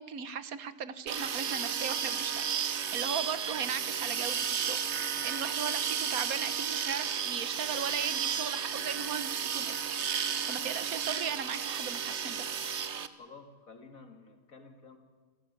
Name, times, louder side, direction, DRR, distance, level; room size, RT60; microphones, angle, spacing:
voice 1, 0.0-12.5, right 7 dB, 75° right, 14 dB, 1.5 m, -37 dB
sound 1, 1.1-13.1, right 7 dB, 55° right, 1.2 m, -33 dB
voice 2, 13.1-15.0, left 4 dB, 70° left, 5 dB, 2.9 m, -51 dB
27.5 x 15.0 x 9.6 m, 1.4 s
omnidirectional pair, 1.5 m